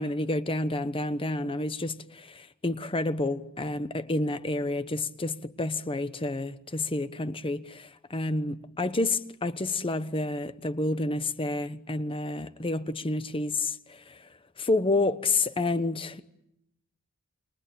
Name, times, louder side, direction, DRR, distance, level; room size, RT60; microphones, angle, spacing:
voice 1, 0.0-14.2 14.6-16.2, left 2 dB, 25° left, 1.0 m, -29 dB
29.5 x 22.5 x 8.7 m
head